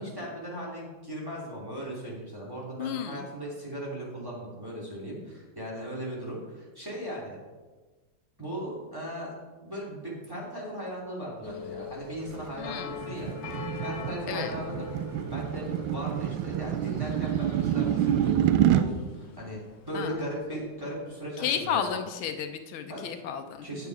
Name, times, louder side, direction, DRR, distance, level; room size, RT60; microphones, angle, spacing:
voice 1, 0.0-7.4 8.4-9.3 9.6-13.3 13.8-15.0 15.3-19.6 19.9-22.0 22.9-23.1 23.6-23.9, right 1 dB, 10° right, -5 dB, 2.8 m, -37 dB
voice 2, 2.8-3.3 12.6-12.9 14.3-14.5 19.9-20.2 21.4-23.7, left 8 dB, 85° left, 7 dB, 1.6 m, -32 dB
sound 1, 11.4-20.6 21.0-21.1, left 8 dB, 65° left, 1.4 m, -43 dB
sound 2, 12.4-18.9, right 11 dB, 75° right, 1.2 m, -27 dB
8.9 x 8.3 x 4.7 m, 1.3 s
omnidirectional pair, 2.2 m